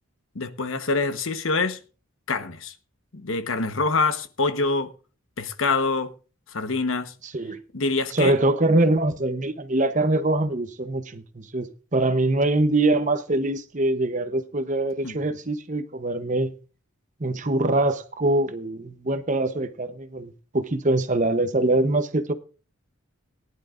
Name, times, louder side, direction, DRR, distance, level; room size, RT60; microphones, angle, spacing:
voice 1, 0.3-1.8 2.3-2.7 3.1-4.9 5.4-6.1 6.5-7.1 7.7-8.4 15.0-15.2, left 3 dB, 70° left, 1.1 m, -25 dB
voice 2, 8.1-16.5 17.2-22.3, right 2 dB, 35° right, 0.8 m, -23 dB
19.0 x 11.0 x 2.5 m
head